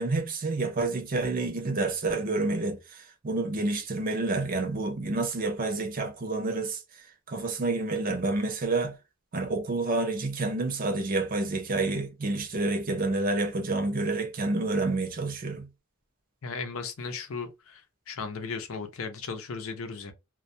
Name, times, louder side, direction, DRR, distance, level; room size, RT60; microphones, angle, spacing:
voice 1, 0.0-9.0 9.3-15.7, right 2 dB, 40° right, 0.5 m, -29 dB
voice 2, 16.4-17.8 18.1-20.1, left 4 dB, 70° left, 0.6 m, -36 dB
2.2 x 2.1 x 2.6 m
head